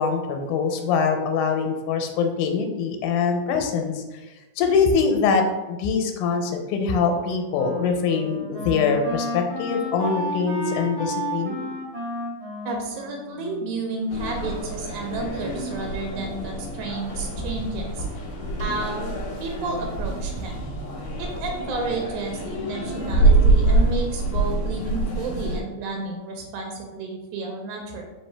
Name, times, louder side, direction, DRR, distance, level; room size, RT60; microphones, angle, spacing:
voice 1, 0.0-4.0 4.6-11.6, left 5 dB, 90° left, 5 dB, 2.1 m, -23 dB
Wind instrument woodwind instrument, 7.0-14.2, left 1 dB, 40° right, 0.9 m, -33 dB
voice 2, 12.7-18.1 18.6-20.5 21.2-28.0, right 3 dB, 85° right, 1 dB, 2.0 m, -31 dB
sound 1, 14.1-25.6, right 2 dB, 70° left, 1.7 m, -25 dB
4.5 x 3.0 x 3.3 m, 1.1 s
omnidirectional pair, 3.4 m